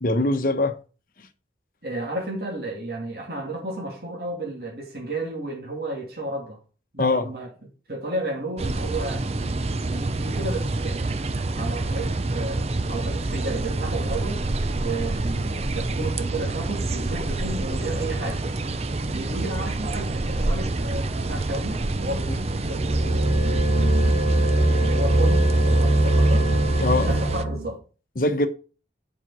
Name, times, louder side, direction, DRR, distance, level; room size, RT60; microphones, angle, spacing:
voice 1, 0.0-0.8 7.0-7.3 22.3-22.4 26.8-27.1 28.2-28.5, left 2 dB, 50° left, 1.0 m, -22 dB
voice 2, 1.8-6.6 6.9-7.5 7.9-11.0 11.5-14.4 14.8-18.4 19.0-23.1 24.1-26.5 27.0-27.8, right 2 dB, 60° right, 2.7 m, -33 dB
sound 1, 8.6-27.5, right 2 dB, 35° right, 0.6 m, -27 dB
sound 2, 22.6-27.7, right 1 dB, 80° right, 2.3 m, -21 dB
7.4 x 5.2 x 6.0 m
head